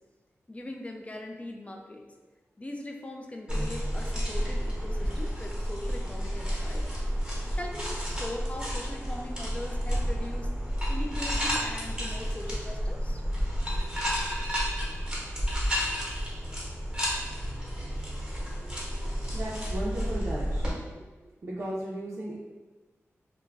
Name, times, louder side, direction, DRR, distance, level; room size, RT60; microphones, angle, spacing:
voice 1, 0.5-2.0 2.6-6.9 7.5-10.5 10.9-13.2, left 1 dB, 25° left, 2 dB, 0.3 m, -40 dB
sound 1, 3.5-20.7, equal, 15° right, 0.8 m, -31 dB
voice 2, 19.3-20.9 21.4-22.4, right 1 dB, 55° right, -7 dB, 0.4 m, -35 dB
2.2 x 2.0 x 3.4 m, 1.2 s
wide cardioid pair, 70°, 5 cm